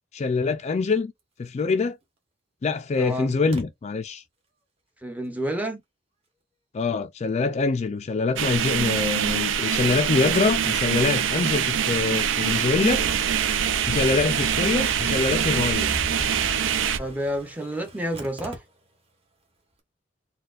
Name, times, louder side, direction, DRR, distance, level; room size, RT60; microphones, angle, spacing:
voice 1, 0.1-1.1 1.4-2.0 2.6-4.2 6.7-13.0 13.9-16.0, left 4 dB, 35° left, 0.3 m, -24 dB
Engine starting, 2.0-2.1 3.5-3.7 8.7-8.8 9.2-9.3 10.3-19.1 19.4-19.5 19.7-19.8, right 2 dB, 30° right, 1.0 m, -45 dB
voice 2, 3.0-3.4 5.0-5.8 17.0-18.6, equal, 10° right, 0.6 m, -29 dB
sound 1, 8.4-17.0, right 8 dB, 80° right, 0.4 m, -24 dB
sound 2, 10.1-17.5, equal, 60° right, 1.8 m, -39 dB
4.0 x 2.2 x 2.4 m
head